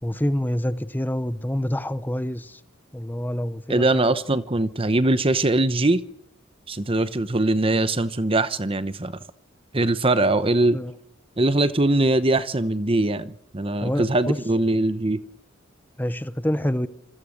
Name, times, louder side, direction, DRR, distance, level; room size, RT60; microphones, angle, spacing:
voice 1, 0.0-2.6 2.9-4.1 10.7-10.9 13.8-14.4 16.0-16.9, equal, 10° left, 0.9 m, -27 dB
voice 2, 3.7-6.0 6.7-9.1 9.7-10.8 11.4-15.2, right 2 dB, 30° right, 0.9 m, -21 dB
27.0 x 22.0 x 6.6 m
head